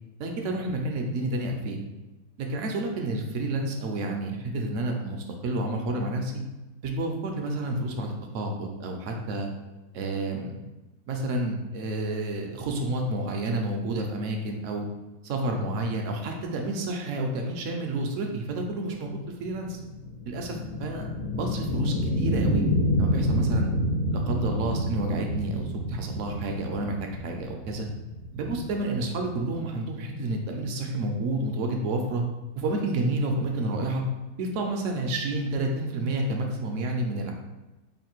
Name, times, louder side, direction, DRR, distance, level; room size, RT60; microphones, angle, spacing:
voice 1, 0.2-1.8 2.4-6.3 6.8-9.5 9.9-10.6 11.1-14.9 15.2-19.8 20.3-21.1 21.3-22.6 23.0-23.7 24.1-27.9 28.3-32.2 32.6-34.0 34.4-37.3, right 2 dB, 65° right, 2 dB, 0.8 m, -30 dB
sound 1, 19.0-29.7, equal, 65° left, 1.4 m, -28 dB
3.2 x 2.5 x 4.4 m, 1.1 s
omnidirectional pair, 1.6 m